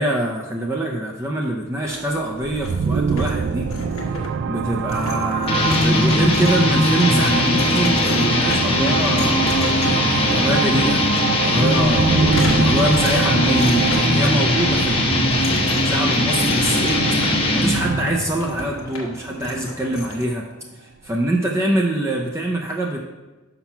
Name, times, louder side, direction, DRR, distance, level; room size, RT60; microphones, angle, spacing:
voice 1, 0.0-3.7 4.1-11.0 11.4-20.5 20.7-23.0, right 1 dB, 15° right, 0 dB, 0.6 m, -24 dB
sound 1, 1.8-20.3, left 1 dB, 65° left, 1.3 m, -35 dB
sound 2, 2.4-20.1, right 6 dB, 55° right, 0.3 m, -25 dB
sound 3, 5.5-18.0, left 2 dB, 25° left, 0.9 m, -19 dB
5.9 x 5.8 x 5.7 m, 1.2 s
head